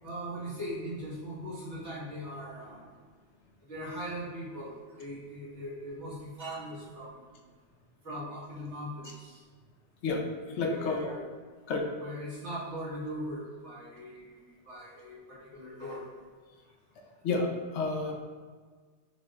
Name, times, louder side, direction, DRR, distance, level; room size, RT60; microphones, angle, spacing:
voice 1, 0.0-3.0 3.4-7.3 8.0-9.4 10.6-11.3 12.0-16.1, equal, 75° right, -9 dB, 1.8 m, -40 dB
voice 2, 10.6-11.1 11.7-11.8 17.2-18.1, left 3 dB, 80° left, 1 dB, 1.0 m, -30 dB
6.0 x 3.1 x 2.4 m, 1.5 s
omnidirectional pair, 1.2 m